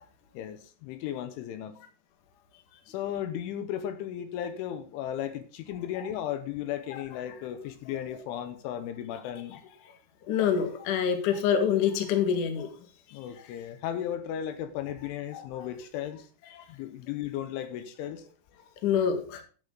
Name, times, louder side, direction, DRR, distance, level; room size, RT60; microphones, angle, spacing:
voice 1, 0.3-1.8 2.9-9.6 13.1-16.3 16.7-18.3, left 10 dB, 80° left, 10 dB, 3.2 m, -35 dB
voice 2, 10.3-12.7 15.3-15.4 16.5-16.6 18.8-19.4, left 8 dB, 55° left, 5 dB, 2.5 m, -26 dB
13.5 x 8.4 x 3.9 m, 0.38 s
omnidirectional pair, 5.7 m